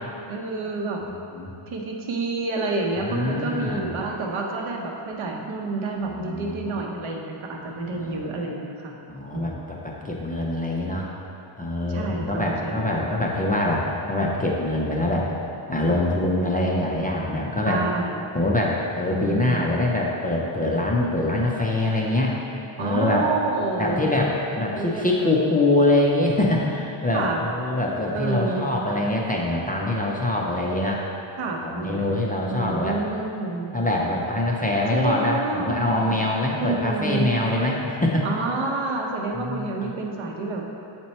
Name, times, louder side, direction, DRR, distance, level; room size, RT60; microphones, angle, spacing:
voice 1, 0.3-1.0 1.7-9.0 9.3-9.7 11.9-13.0 17.6-18.2 19.1-19.9 22.8-24.1 24.7-25.3 27.1-27.4 28.1-28.7 31.4-33.7 34.9-36.2 36.6-37.3 38.2-40.6, right 3 dB, 70° right, 0 dB, 1.0 m, -29 dB
voice 2, 3.0-3.9 6.1-6.8 7.9-8.2 9.1-11.1 11.6-15.3 15.7-17.8 18.3-22.3 22.8-23.2 23.8-31.1 31.6-33.0 33.7-38.3 39.3-39.7, left 1 dB, 20° left, -3 dB, 0.4 m, -24 dB
7.6 x 4.4 x 4.2 m, 2.7 s
wide cardioid pair, 165°, 49 cm